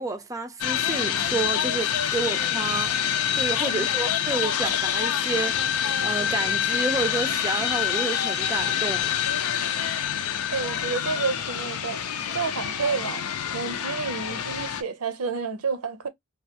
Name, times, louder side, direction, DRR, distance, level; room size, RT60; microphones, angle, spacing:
voice 1, 0.0-2.9 3.3-9.1, right 3 dB, 15° right, 0.4 m, -30 dB
sound 1, 0.6-14.8, left 9 dB, 80° left, 0.5 m, -26 dB
voice 2, 10.5-12.0 12.3-13.2 13.5-16.1, right 5 dB, 85° right, 0.6 m, -30 dB
3.1 x 2.3 x 2.7 m
head